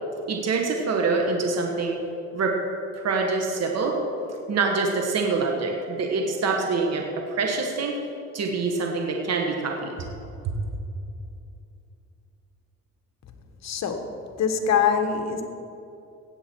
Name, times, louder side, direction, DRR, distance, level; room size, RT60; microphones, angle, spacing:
voice 1, 0.3-1.9 2.3-2.6 3.0-4.0 4.5-8.0 8.3-10.0 10.4-10.5, right 4 dB, 55° right, 1 dB, 1.5 m, -25 dB
voice 2, 13.6-15.4, left 7 dB, 60° left, 6 dB, 1.3 m, -24 dB
17.5 x 8.1 x 4.6 m, 2.7 s
cardioid pair, 90°, 30 cm